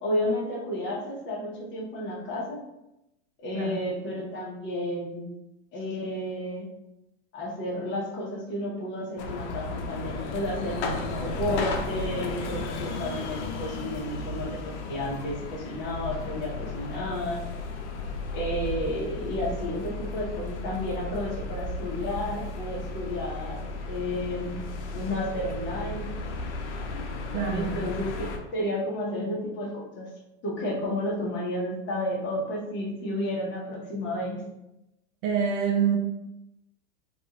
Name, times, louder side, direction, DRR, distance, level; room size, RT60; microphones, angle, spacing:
voice 1, 0.0-2.6 3.4-5.3 5.7-6.7 7.3-17.4 18.3-24.6 24.9-26.1 27.5-30.1 30.4-34.4, left 1 dB, 30° left, -3 dB, 0.9 m, -32 dB
sound 1, 9.2-28.4, left 3 dB, 70° left, 0.6 m, -34 dB
voice 2, 27.3-27.8 35.2-36.0, right 7 dB, 50° right, 2 dB, 0.6 m, -26 dB
2.5 x 2.4 x 2.9 m, 0.88 s
supercardioid pair, 125°, 36 cm